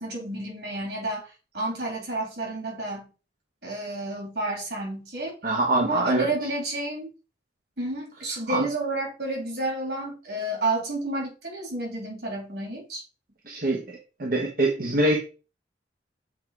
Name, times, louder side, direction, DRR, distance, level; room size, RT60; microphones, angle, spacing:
voice 1, 0.0-3.1 3.6-5.4 5.7-7.1 7.8-13.0, right 2 dB, 70° right, 3.0 m, -30 dB
voice 2, 5.4-6.3 8.5-8.7 13.5-15.2, right 2 dB, 50° right, 1.1 m, -24 dB
7.3 x 3.5 x 4.7 m
head